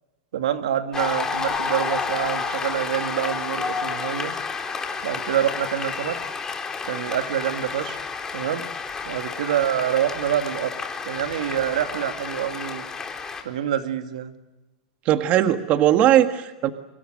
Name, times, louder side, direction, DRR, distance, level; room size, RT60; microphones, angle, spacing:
voice 1, 0.3-4.4 5.0-6.2 6.9-8.0 8.3-8.7 9.1-10.7 11.0-12.9 13.4-14.3, right 10 dB, 80° right, 6 dB, 2.5 m, -26 dB
Cheering / Applause, 0.9-13.4, left 5 dB, 15° left, 4.1 m, -30 dB
voice 2, 15.0-16.7, right 12 dB, 40° right, 7 dB, 1.7 m, -19 dB
28.5 x 26.0 x 6.5 m, 1.0 s
supercardioid pair, 130°, 4 cm